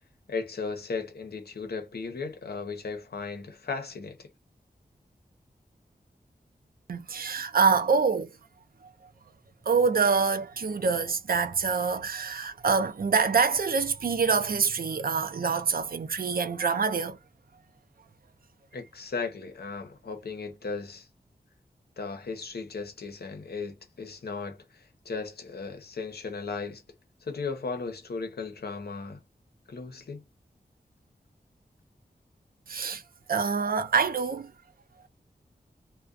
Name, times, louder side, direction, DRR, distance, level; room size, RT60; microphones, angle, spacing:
voice 1, 0.3-4.3 18.7-21.1 22.0-26.8 27.2-29.2 29.7-30.2, left 4 dB, 75° left, 0.7 m, -36 dB
voice 2, 6.9-8.3 9.7-17.2 32.7-33.0 33.3-34.5, right 5 dB, 65° right, 0.5 m, -25 dB
2.3 x 2.2 x 2.5 m
wide cardioid pair, 85°, 16 cm